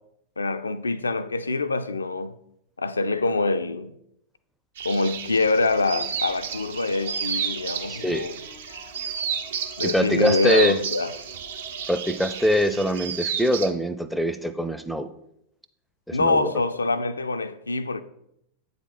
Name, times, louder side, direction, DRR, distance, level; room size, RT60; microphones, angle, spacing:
voice 1, 0.4-2.4 2.8-4.0 4.8-8.3 8.7-8.8 9.8-11.1 16.1-18.0, left 3 dB, 75° left, 0.3 m, -25 dB
sound 1, 4.8-13.7, right 7 dB, 60° right, 0.6 m, -32 dB
sound 2, 5.5-12.6, right 2 dB, 75° right, 1.8 m, -46 dB
voice 2, 7.9-8.3 9.8-10.8 11.9-15.1 16.1-16.6, equal, ahead, 0.4 m, -24 dB
8.1 x 4.0 x 4.1 m
figure-of-eight pair, 90°, 0 cm